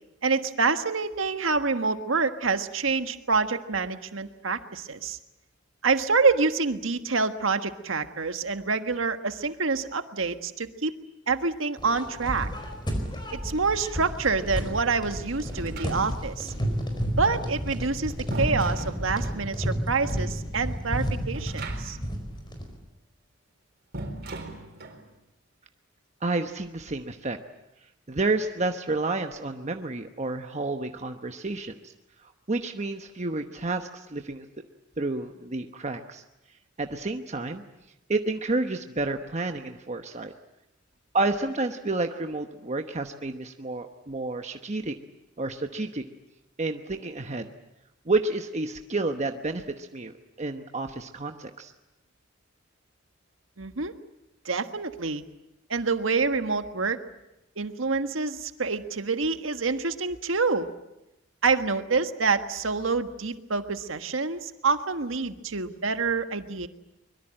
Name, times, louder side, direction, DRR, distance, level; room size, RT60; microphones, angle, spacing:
voice 1, 0.2-5.2 5.8-11.0 11.3-12.5 13.3-16.5 17.2-22.0 53.6-53.9 54.4-55.2 55.7-57.0 57.6-60.7 61.4-66.7, right 4 dB, 90° right, 8 dB, 1.5 m, -27 dB
sound 1, 11.8-22.8, equal, 25° left, 4.7 m, -31 dB
sound 2, 15.5-16.4 17.6-19.5 21.3-22.2 22.4-22.5 23.9-25.1, right 2 dB, 55° right, 4.4 m, -39 dB
voice 2, 26.2-27.4 28.1-31.9 32.2-34.5 35.0-36.2 36.8-37.6 38.1-40.3 41.1-44.9 45.4-46.0 46.6-47.5 48.1-51.7, right 2 dB, 35° right, 6 dB, 1.1 m, -30 dB
24.0 x 22.5 x 8.9 m, 0.92 s
head